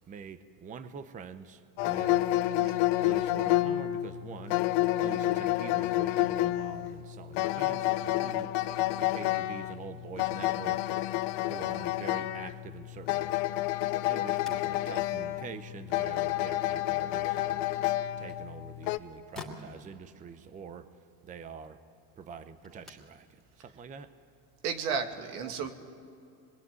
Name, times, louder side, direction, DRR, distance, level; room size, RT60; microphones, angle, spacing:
voice 1, 0.1-2.3 3.0-4.6 5.0-8.5 9.0-10.9 11.5-13.3 14.1-17.7 18.2-21.8 22.2-24.1 25.4-25.7, right 6 dB, 20° right, 11 dB, 0.7 m, -45 dB
sound 1, 1.8-19.0, left 15 dB, 60° left, 0.9 m, -29 dB
sound 2, 14.2-24.7, left 2 dB, ahead, 2.8 m, -54 dB
voice 2, 24.6-25.7, right 6 dB, 85° right, 6 dB, 2.3 m, -33 dB
26.0 x 21.5 x 9.4 m, 2.4 s
cardioid pair, 155°, 44 cm